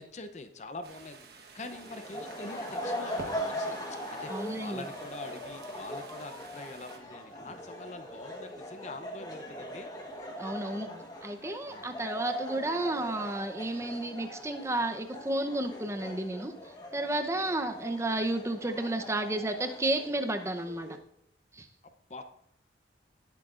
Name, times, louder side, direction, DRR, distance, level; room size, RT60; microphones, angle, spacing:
voice 1, 0.0-9.9 11.7-11.9 22.1-22.2, left 2 dB, 40° left, 8 dB, 0.7 m, -44 dB
sound 1, 0.8-7.0, right 3 dB, 55° right, 1.3 m, -50 dB
sound 2, 1.6-21.0, equal, 20° left, 1.3 m, -41 dB
voice 2, 4.3-4.9 10.4-10.9 11.2-16.5 16.9-21.0 21.5-21.7, right 1 dB, 15° right, 6 dB, 0.8 m, -32 dB
18.5 x 8.1 x 2.5 m, 0.75 s
head